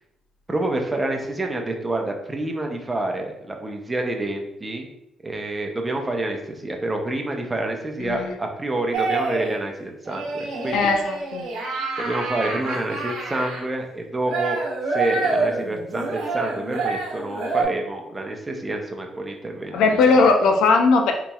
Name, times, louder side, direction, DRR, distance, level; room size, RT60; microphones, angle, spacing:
voice 1, 0.5-4.9 5.2-10.9 12.0-14.6 14.9-20.2, right 2 dB, 20° right, 2 dB, 0.6 m, -28 dB
voice 2, 8.0-8.3 10.7-11.5 19.7-21.1, left 4 dB, 85° left, 4 dB, 0.5 m, -18 dB
sound 1, 8.9-9.6 10.0-13.6 14.3-17.6, right 3 dB, 90° right, 0.8 m, -27 dB
3.9 x 3.0 x 2.3 m, 0.83 s
cardioid pair, 90°, 0 cm